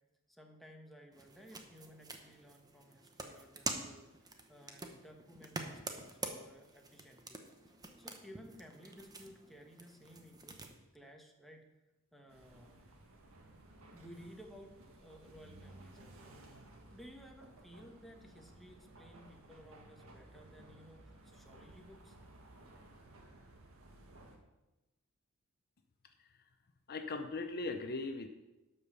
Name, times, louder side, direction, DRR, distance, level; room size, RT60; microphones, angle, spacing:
voice 1, 0.3-7.4 7.7-10.6 10.9-11.7 12.1-12.8 13.9-22.2, equal, ahead, 2 dB, 1.3 m, -57 dB
sound 1, 1.1-10.7, right 3 dB, 20° right, 1.0 m, -46 dB
sound 2, 12.3-24.4, right 1 dB, 70° right, 1.7 m, -57 dB
voice 2, 26.9-28.3, left 3 dB, 45° left, 7 dB, 0.7 m, -38 dB
12.0 x 5.5 x 6.8 m, 1.0 s
head